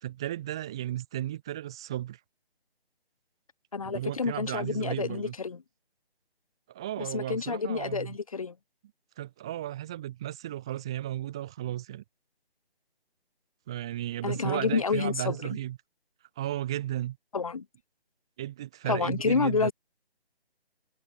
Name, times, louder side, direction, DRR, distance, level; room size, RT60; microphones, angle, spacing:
voice 1, 0.0-2.2 3.8-5.3 6.7-8.2 9.2-12.0 13.7-15.8 16.4-17.2 18.4-19.7, right 13 dB, 5° right, 1.3 m, -34 dB
voice 2, 3.7-5.6 7.0-8.5 14.2-15.4 17.3-17.6 18.9-19.7, left 5 dB, 35° left, 3.1 m, -29 dB
hypercardioid pair, 175°, 32 cm